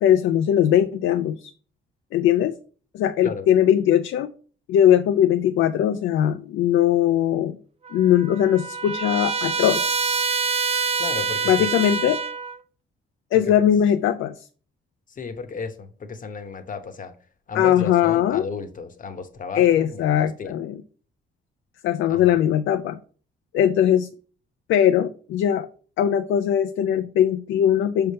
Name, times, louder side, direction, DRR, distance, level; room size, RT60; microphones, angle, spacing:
voice 1, 0.0-1.5 2.1-2.5 2.9-4.3 4.7-7.6 7.9-10.0 11.5-12.2 13.3-14.5 17.5-18.4 19.5-20.8 21.8-23.0 23.5-24.1 24.7-25.7 26.0-28.1, left 10 dB, 80° left, 10 dB, 0.4 m, -20 dB
Trumpet, 7.8-12.6, right 5 dB, 30° right, 0.6 m, -26 dB
voice 2, 11.0-11.7 15.1-17.1 17.5-20.5 22.1-22.4, left 5 dB, 40° left, 9 dB, 0.9 m, -34 dB
5.5 x 3.4 x 5.4 m, 0.42 s
cardioid pair, 90°, 20 cm